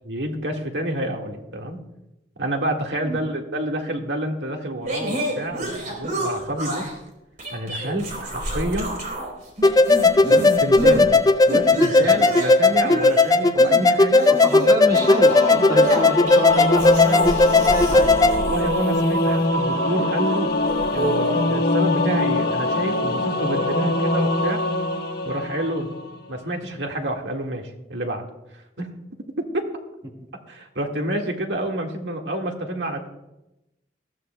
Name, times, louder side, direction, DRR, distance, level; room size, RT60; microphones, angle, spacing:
voice 1, 0.0-1.8 2.4-6.9 7.5-8.9 10.2-11.1 11.5-14.3 18.3-20.6 20.9-24.6 25.2-26.0 26.3-28.2 28.8-28.9 29.4-29.7 30.5-33.1, right 1 dB, 80° right, 2 dB, 1.8 m, -28 dB
sound 1, 4.9-7.0 7.4-9.3 9.6-11.1 11.5-19.4 20.2-21.6, right 1 dB, 50° right, 3.7 m, -29 dB
sound 2, 9.6-18.4, left 3 dB, 20° left, 0.4 m, -16 dB
voice 2, 14.3-18.1, equal, 25° right, 1 dB, 1.6 m, -28 dB
Singing / Musical instrument, 14.9-26.2, left 2 dB, 60° left, 1.3 m, -23 dB
20.5 x 14.0 x 2.2 m, 0.93 s
head